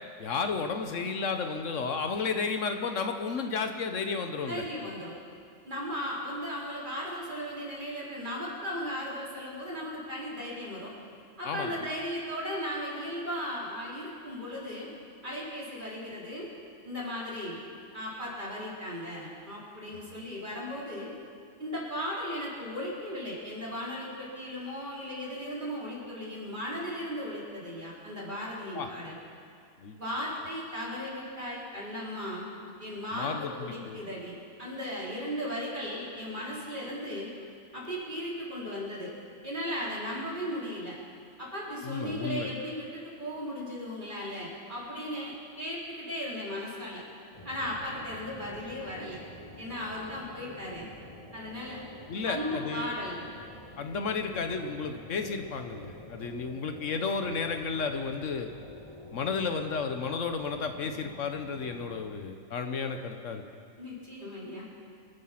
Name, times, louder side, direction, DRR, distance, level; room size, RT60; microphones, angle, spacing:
voice 1, 0.2-4.6 11.4-11.8 20.1-20.2 28.7-28.9 29.8-30.0 33.1-34.0 41.8-42.5 52.1-52.9 53.8-58.5 59.1-63.4, left 5 dB, 70° left, 6 dB, 1.3 m, -32 dB
voice 2, 4.5-5.1 5.7-10.9 11.4-14.9 15.2-16.5 16.8-17.6 17.9-21.1 21.6-29.1 30.0-32.5 32.8-37.3 37.7-39.1 39.4-41.0 41.4-47.0 47.4-49.2 49.6-50.9 51.3-51.8 52.3-53.2 63.8-64.7, equal, 35° right, -6 dB, 4.0 m, -36 dB
sound 1, 47.3-62.1, left 1 dB, 25° left, 1.7 m, -48 dB
25.5 x 9.0 x 5.8 m, 2.3 s
omnidirectional pair, 1.3 m